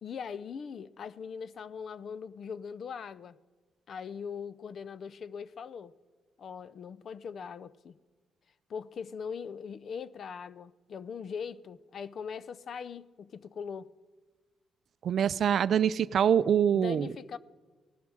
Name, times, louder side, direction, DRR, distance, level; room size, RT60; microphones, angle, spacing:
voice 1, 0.0-3.4 3.9-5.9 6.4-8.0 8.7-13.9 16.7-17.4, left 6 dB, 55° left, 0.5 m, -41 dB
voice 2, 15.0-17.1, right 8 dB, 60° right, 0.4 m, -25 dB
17.0 x 12.0 x 6.3 m
cardioid pair, 90°, 0 cm